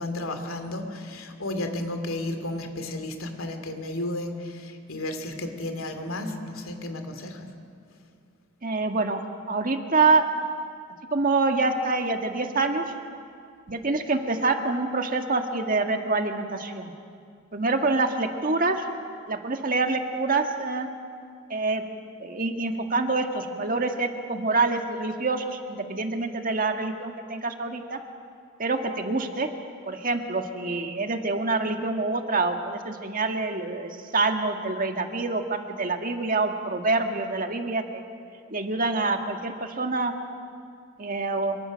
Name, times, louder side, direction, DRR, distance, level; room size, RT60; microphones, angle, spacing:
voice 1, 0.0-7.5, left 1 dB, 90° left, 6 dB, 2.6 m, -33 dB
voice 2, 8.6-9.2 9.5-10.3 11.1-12.8 13.7-16.9 17.5-18.8 19.3-20.9 21.5-21.8 22.2-28.0 28.6-29.5 29.9-38.0 38.5-40.1 41.0-41.6, right 3 dB, 40° right, 5 dB, 1.7 m, -26 dB
26.5 x 23.0 x 6.4 m, 2.3 s
head